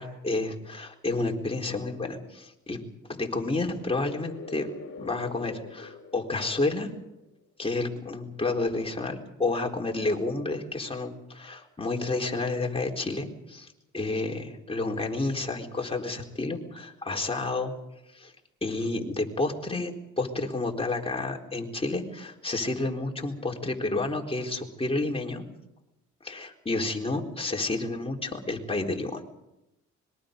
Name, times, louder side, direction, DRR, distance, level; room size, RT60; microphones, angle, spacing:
voice 1, 0.0-2.8 3.1-4.7 5.0-6.9 7.6-13.7 13.9-17.7 18.1-18.3 18.6-25.4 26.2-29.2, left 2 dB, 20° left, 1 dB, 4.0 m, -30 dB
sound 1, 3.5-7.3, left 3 dB, 45° left, 3.2 m, -44 dB
26.0 x 22.5 x 5.3 m, 0.89 s
cardioid pair, 90°, 30 cm